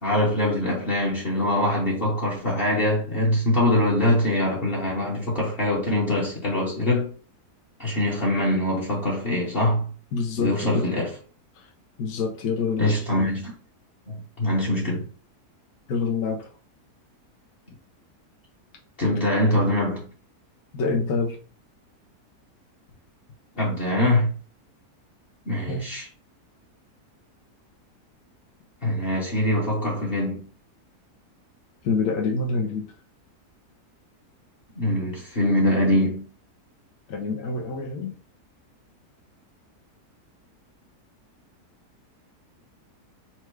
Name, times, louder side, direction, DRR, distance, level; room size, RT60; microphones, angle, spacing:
voice 1, 0.0-7.1 7.8-9.8 10.4-11.1 12.8-13.5 14.1-15.1 19.0-20.1 23.6-24.3 25.5-26.1 28.8-30.5 34.8-36.3, left 1 dB, 40° left, 1.2 m, -23 dB
voice 2, 10.1-10.9 11.5-11.7 12.0-12.9 15.9-16.5 20.7-21.4 25.7-25.9 31.8-32.9 37.1-38.1, left 4 dB, 65° left, 1.3 m, -26 dB
4.5 x 2.3 x 4.5 m
omnidirectional pair, 1.7 m